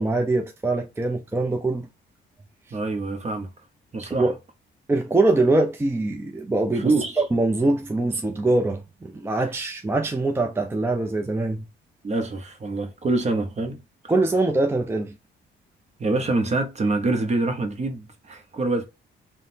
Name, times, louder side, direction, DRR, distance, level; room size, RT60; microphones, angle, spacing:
voice 1, 0.0-1.9 4.1-4.3 4.9-11.6 14.1-15.2, right 2 dB, 10° right, 0.4 m, -23 dB
voice 2, 2.7-3.5 3.9-4.3 6.8-7.2 12.0-13.8 16.0-18.8, right 2 dB, 35° right, 0.8 m, -25 dB
3.6 x 2.1 x 2.7 m
cardioid pair, 90°, 20 cm